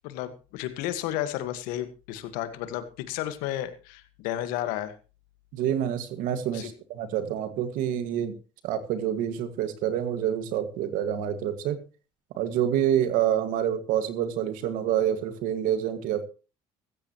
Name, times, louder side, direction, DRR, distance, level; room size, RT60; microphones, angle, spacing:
voice 1, 0.0-4.9 6.5-6.7, left 12 dB, 90° left, 11 dB, 1.7 m, -32 dB
voice 2, 5.5-8.4 8.6-11.8 12.4-16.2, right 10 dB, 80° right, 10 dB, 2.0 m, -27 dB
15.5 x 14.5 x 3.1 m, 0.32 s
supercardioid pair, 85°, 14 cm